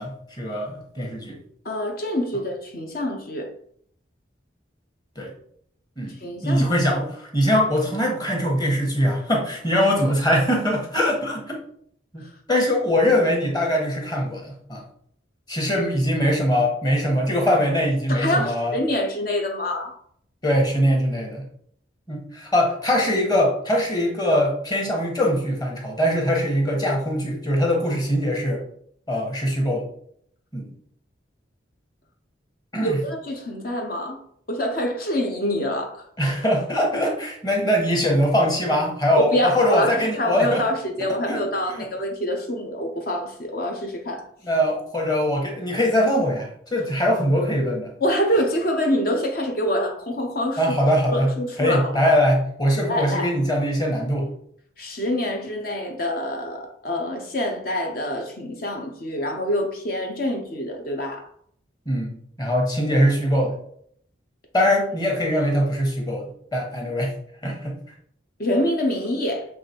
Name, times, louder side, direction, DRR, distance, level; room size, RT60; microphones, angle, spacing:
voice 1, 0.0-1.4 5.2-5.3 6.0-6.1 6.4-11.6 12.1-12.2 12.5-14.8 15.5-18.8 20.4-21.5 22.1-28.6 29.1-29.9 30.5-30.6 32.7-33.0 36.2-40.6 41.3-41.4 41.7-41.8 44.4-47.9 50.6-51.3 51.6-54.3 61.8-63.5 64.5-67.1 67.4-67.7, equal, 20° left, 0 dB, 1.4 m, -22 dB
voice 2, 1.6-3.5 6.2-6.7 18.1-19.9 32.8-34.2 34.5-36.1 39.1-44.3 48.0-50.6 51.1-52.1 52.9-53.3 54.8-61.3 68.4-69.5, equal, 50° left, 2 dB, 0.8 m, -26 dB
7.1 x 3.3 x 4.5 m, 0.65 s
head